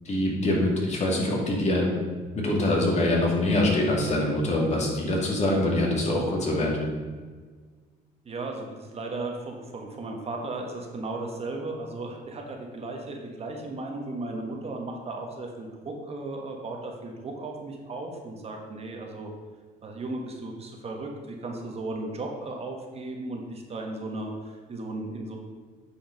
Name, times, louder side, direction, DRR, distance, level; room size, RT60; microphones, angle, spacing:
voice 1, 0.1-1.9 2.3-6.8, left 1 dB, 40° left, -2 dB, 2.4 m, -24 dB
voice 2, 8.2-19.3 19.8-25.4, right 2 dB, 35° right, 1 dB, 1.4 m, -35 dB
9.1 x 5.0 x 5.3 m, 1.5 s
cardioid pair, 110°, 17 cm